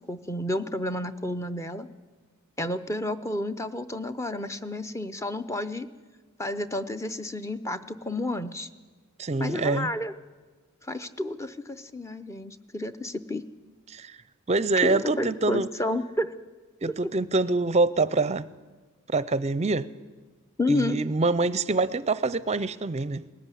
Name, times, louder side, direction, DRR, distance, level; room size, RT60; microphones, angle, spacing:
voice 1, 0.1-1.9 2.6-5.9 6.4-8.7 9.4-10.1 10.8-13.4 14.8-16.3 17.0-17.1 20.6-21.0, left 1 dB, 15° left, 0.6 m, -31 dB
voice 2, 9.2-9.9 13.9-14.1 14.5-15.7 16.8-18.5 19.1-19.9 20.7-23.2, right 3 dB, 30° right, 0.5 m, -25 dB
19.0 x 15.0 x 9.8 m
head